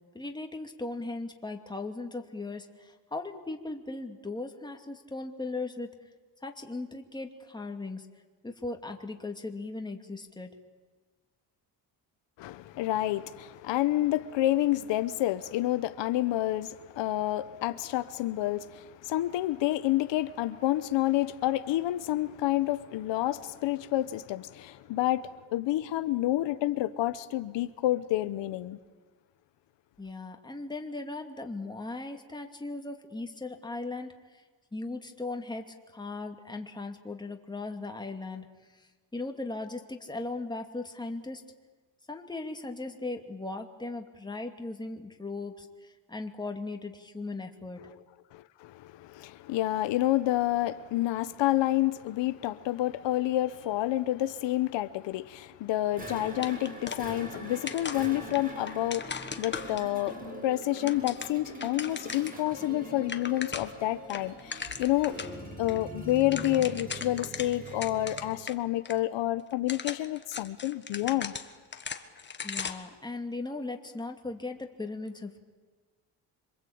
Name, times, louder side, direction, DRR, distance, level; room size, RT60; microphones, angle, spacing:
voice 1, 0.1-5.9 6.4-8.1 8.4-10.5 30.0-34.4 34.7-38.5 38.7-41.4 42.1-47.8 72.4-75.4, left 2 dB, 10° left, 2.5 m, -38 dB
voice 2, 12.4-28.8 48.3-65.2 65.6-71.3, left 15 dB, 80° left, 1.1 m, -29 dB
sound 1, 55.9-68.5, right 1 dB, 20° right, 6.2 m, -43 dB
sound 2, 56.4-57.4 57.7-60.1 60.6-62.4 62.7-62.8 63.0-63.8 64.1-65.3 65.7-65.8 66.1-68.6 68.8-68.9 69.5-72.9, left 5 dB, 25° left, 1.6 m, -38 dB
26.5 x 24.5 x 8.8 m
cardioid pair, 135°, 43 cm